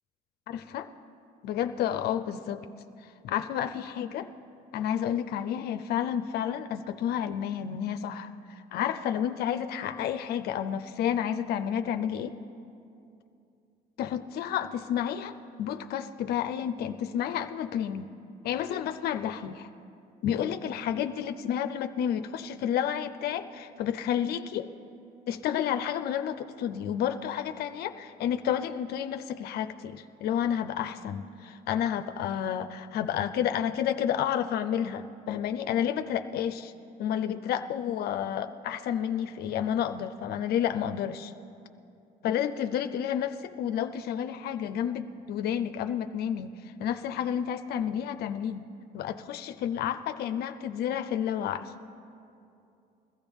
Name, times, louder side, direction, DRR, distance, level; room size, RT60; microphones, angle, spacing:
voice 1, 0.5-0.9 1.4-2.7 3.0-4.3 4.7-12.4 14.0-18.1 18.4-19.7 20.2-24.7 25.3-36.7 37.0-41.3 42.2-48.6 48.9-51.7, left 9 dB, 70° left, 9 dB, 0.5 m, -30 dB
21.5 x 13.5 x 3.5 m, 2.6 s
cardioid pair, 110°, 17 cm